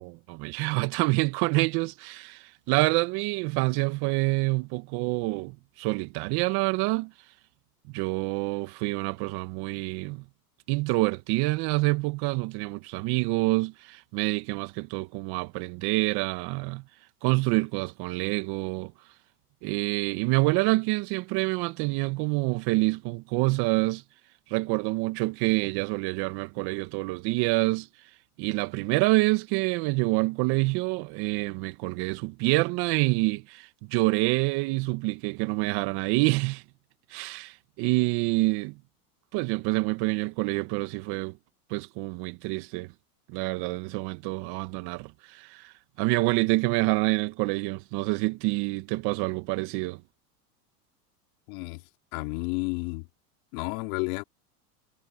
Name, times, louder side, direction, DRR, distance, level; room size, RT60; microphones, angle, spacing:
voice 1, 0.0-7.1 7.9-10.2 10.7-16.8 17.2-18.9 19.6-24.0 24.5-27.9 28.4-36.6 37.1-38.8 39.3-41.4 41.7-42.9 43.3-50.0, right 23 dB, 55° right, 2.1 m, -27 dB
voice 2, 51.5-51.8 52.1-53.1 53.5-54.2, left 29 dB, 60° left, 4.2 m, -31 dB
hypercardioid pair, 110°, 47 cm